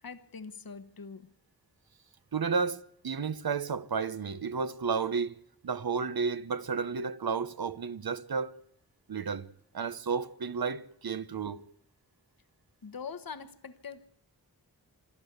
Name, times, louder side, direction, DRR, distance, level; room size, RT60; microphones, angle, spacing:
voice 1, 0.0-1.3 12.8-14.1, left 5 dB, 70° left, 1.4 m, -43 dB
voice 2, 2.3-5.4 5.6-8.6 9.1-9.5 9.7-11.6, right 5 dB, 75° right, 1.1 m, -32 dB
27.0 x 12.0 x 8.1 m
wide cardioid pair, 50°, 37 cm